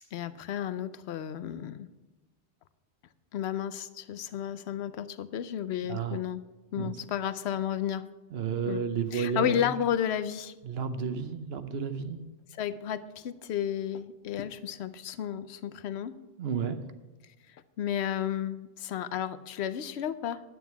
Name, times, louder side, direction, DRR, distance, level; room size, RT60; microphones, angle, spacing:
voice 1, 0.1-1.9 3.3-6.4 6.7-8.1 8.6-8.8 9.1-10.5 12.5-16.1 17.5-20.4, left 10 dB, 70° left, 14 dB, 0.9 m, -32 dB
voice 2, 8.3-9.7 10.6-12.2 16.4-16.8, right 7 dB, 65° right, 10 dB, 1.0 m, -32 dB
11.0 x 9.1 x 4.7 m, 1.1 s
omnidirectional pair, 1.2 m